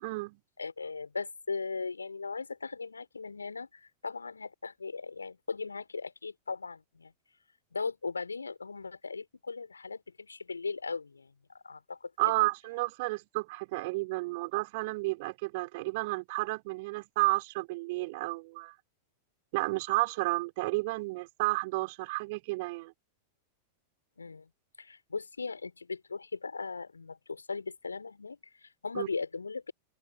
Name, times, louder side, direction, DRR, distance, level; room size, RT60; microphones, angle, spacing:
voice 1, 0.0-0.4 12.2-18.7 19.5-22.9 29.0-29.1, right 23 dB, 50° right, 5.3 m, -31 dB
voice 2, 0.6-3.7 4.0-7.1 7.7-12.1 12.4-12.5 24.2-24.5 24.8-29.7, left 4 dB, 75° left, 6.6 m, -38 dB
open air
figure-of-eight pair, 90°, 0 cm